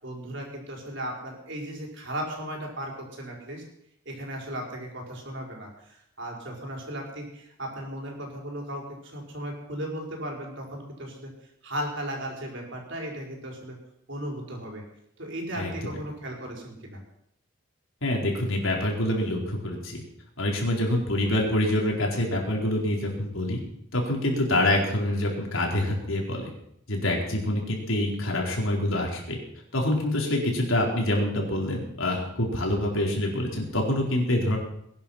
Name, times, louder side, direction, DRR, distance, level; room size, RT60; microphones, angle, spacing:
voice 1, 0.0-3.6 4.0-11.3 11.6-13.8 14.1-14.8 15.2-17.0, right 1 dB, 55° right, 0 dB, 5.2 m, -36 dB
voice 2, 18.0-20.0 20.4-23.6 23.9-26.5 26.9-29.4 29.7-34.6, left 1 dB, 70° left, -1 dB, 4.5 m, -26 dB
20.5 x 11.5 x 5.9 m, 0.75 s
head